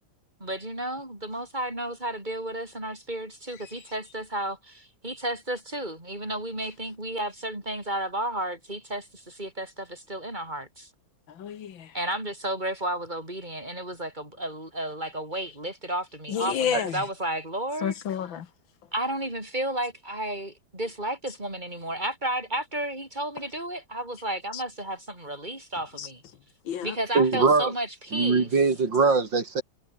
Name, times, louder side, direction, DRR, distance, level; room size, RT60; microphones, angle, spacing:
voice 1, 0.4-10.9 11.9-18.0 18.9-26.2 26.8-28.5, right 1 dB, 20° right, 7.1 m, -32 dB
voice 2, 11.3-11.9 16.3-17.0 17.8-18.5 24.5-24.6 26.0-26.1 26.7-27.0, left 9 dB, 90° left, 2.2 m, -30 dB
voice 3, 27.1-27.7 28.1-29.6, right 4 dB, 70° right, 3.9 m, -22 dB
omnidirectional pair, 2.1 m